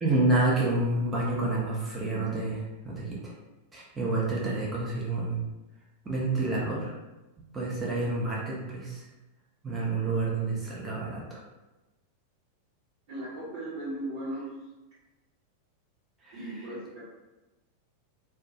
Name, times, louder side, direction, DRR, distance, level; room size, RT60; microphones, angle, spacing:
voice 1, 0.0-3.3 3.7-5.4 6.0-7.0 7.5-9.0 9.6-11.4 16.2-16.7, right 2 dB, 15° right, -5 dB, 0.6 m, -29 dB
voice 2, 13.1-14.5 16.3-17.0, right 1 dB, 50° right, -12 dB, 1.1 m, -37 dB
2.2 x 2.2 x 2.8 m, 1.1 s
figure-of-eight pair, 90°, 0 cm